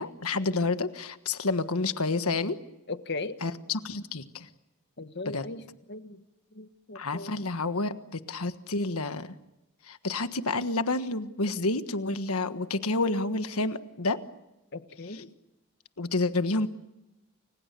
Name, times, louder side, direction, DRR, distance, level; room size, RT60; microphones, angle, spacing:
voice 1, 0.0-2.6 3.4-4.5 5.2-5.5 6.9-9.3 9.8-14.2 15.1-15.2 16.0-16.7, left 3 dB, 75° left, 10 dB, 1.4 m, -29 dB
voice 2, 2.9-3.4 5.0-5.6 5.9-6.2 6.5-7.4 14.7-15.3, left 3 dB, 50° left, 10 dB, 1.4 m, -38 dB
29.5 x 26.0 x 6.8 m, 0.96 s
head